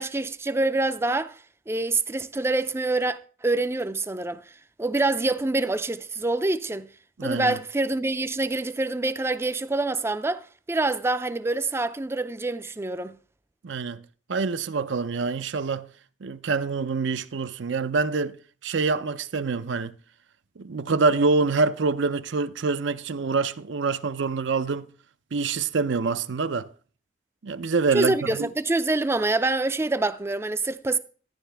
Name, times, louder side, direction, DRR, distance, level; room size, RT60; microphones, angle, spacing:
voice 1, 0.0-1.4 1.7-4.4 4.8-6.9 7.2-13.2 27.9-31.0, right 2 dB, 15° right, 0.4 m, -26 dB
voice 2, 7.2-7.6 13.6-14.0 14.3-15.9 16.2-18.3 18.6-19.9 20.6-24.9 25.3-26.7 27.4-28.5, right 4 dB, 75° right, 0.6 m, -26 dB
12.0 x 10.5 x 3.4 m
head